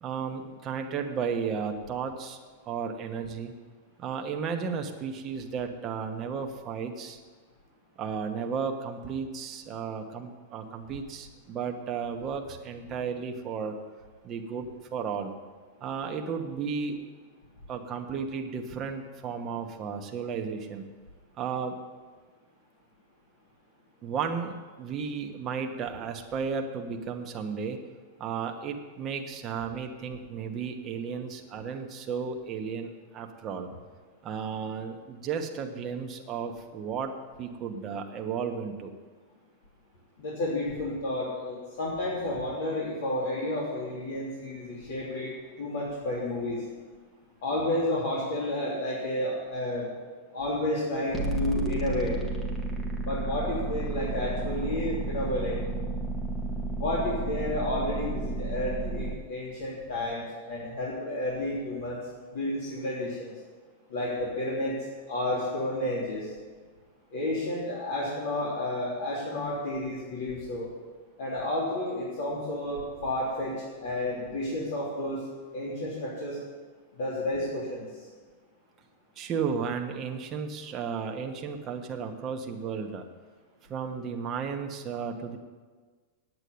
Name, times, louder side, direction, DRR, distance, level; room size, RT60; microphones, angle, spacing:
voice 1, 0.0-2.4 2.7-3.5 4.0-7.2 8.0-13.8 14.2-15.3 15.8-17.0 17.7-20.8 21.4-21.8 24.0-27.8 28.2-33.7 34.2-37.1 37.4-38.9 79.2-83.0 83.7-85.4, right 6 dB, 20° right, 3 dB, 1.0 m, -34 dB
voice 2, 40.2-46.6 47.4-49.9 50.3-52.2 53.0-55.6 56.8-62.0 62.3-63.3 63.9-64.8 65.1-66.3 67.1-70.7 71.2-75.2 75.5-76.4 77.0-77.9, left 1 dB, 70° left, -6 dB, 3.3 m, -31 dB
sound 1, 51.1-59.1, right 2 dB, 10° left, 1.2 m, -32 dB
8.9 x 8.5 x 9.4 m, 1.4 s
supercardioid pair, 170°, 0 cm